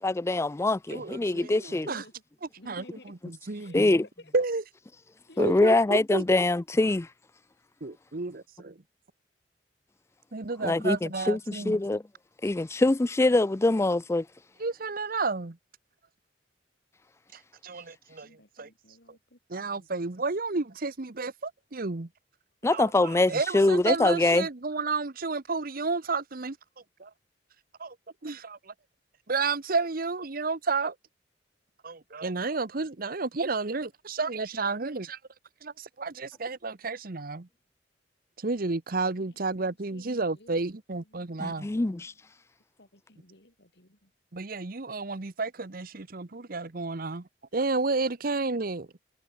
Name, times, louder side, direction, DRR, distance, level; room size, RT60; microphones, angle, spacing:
voice 1, 0.0-1.9 3.7-4.0 5.4-7.1 10.6-12.0 12.4-14.3 22.6-24.5 41.4-42.1, left 2 dB, 15° left, 0.4 m, -24 dB
voice 2, 0.9-2.0 2.7-2.8 3.3-3.9 4.3-4.6 5.4-6.2 7.8-8.7 10.3-11.8 14.6-15.6 17.6-18.3 18.6-18.7 19.5-22.1 22.7-26.6 27.0-27.1 27.8-27.9 28.2-28.7 29.3-30.9 31.8-35.2 35.6-37.5 38.4-41.7 44.3-47.2 47.5-48.9, right 3 dB, 55° right, 1.0 m, -31 dB
voice 3, 1.7-2.1 2.6-3.1 3.6-3.8 4.2-4.5 5.3-5.8 18.2-19.9 39.2-40.7 41.0-42.1 42.8-44.1, left 1 dB, 65° left, 7.2 m, -55 dB
head